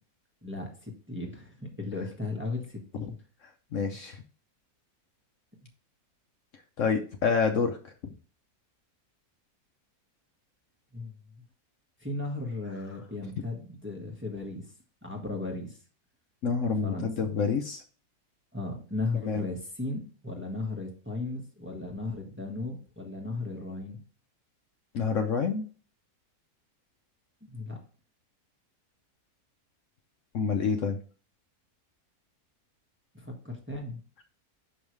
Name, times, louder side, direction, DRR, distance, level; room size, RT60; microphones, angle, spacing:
voice 1, 0.4-3.2 10.9-11.2 12.0-14.7 15.0-15.8 16.8-17.3 18.5-24.0 27.4-27.8 33.1-34.0, left 2 dB, 10° right, 0 dB, 1.2 m, -36 dB
voice 2, 3.7-4.2 6.8-7.8 16.4-17.8 19.2-19.4 24.9-25.7 30.3-31.0, left 5 dB, 60° left, 5 dB, 1.0 m, -27 dB
6.3 x 5.4 x 3.2 m, 0.39 s
omnidirectional pair, 1.6 m